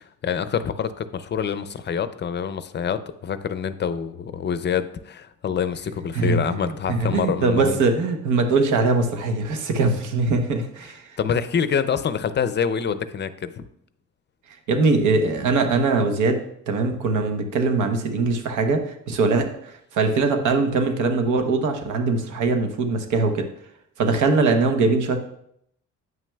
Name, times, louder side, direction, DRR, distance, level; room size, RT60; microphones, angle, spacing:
voice 1, 0.0-7.8 11.2-13.6, left 7 dB, 35° left, 12 dB, 0.5 m, -26 dB
voice 2, 6.1-11.1 14.7-16.4 16.7-19.5 19.9-23.5 24.0-25.2, right 3 dB, 80° right, 6 dB, 1.0 m, -21 dB
9.1 x 5.9 x 2.3 m, 0.73 s
cardioid pair, 90°, 30 cm